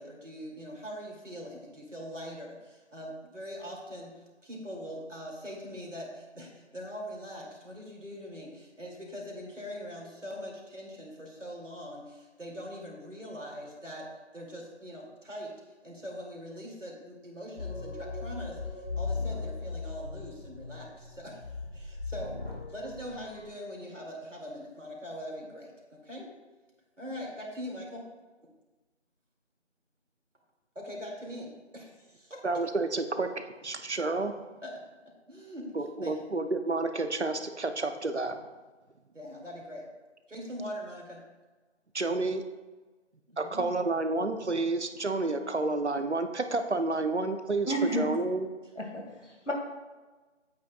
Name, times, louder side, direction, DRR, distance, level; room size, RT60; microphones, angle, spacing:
voice 1, 0.0-4.1 4.4-14.1 14.3-15.5 15.8-21.4 21.7-22.4 22.7-26.3 27.0-28.0 30.7-32.6 34.6-34.8 35.3-35.7 36.0-36.2 39.1-39.9 40.3-41.2 43.3-43.7, equal, 85° right, -1 dB, 2.5 m, -42 dB
sound 1, 17.6-23.4, left 4 dB, 55° left, 2.5 m, -38 dB
voice 2, 32.4-34.3 35.7-38.4 41.9-42.5 43.4-48.5, right 3 dB, 65° right, 8 dB, 0.8 m, -30 dB
voice 3, 47.7-48.0 48.8-49.5, right 1 dB, 75° left, 0 dB, 2.3 m, -31 dB
9.1 x 8.4 x 2.3 m, 1.3 s
figure-of-eight pair, 175°, 36 cm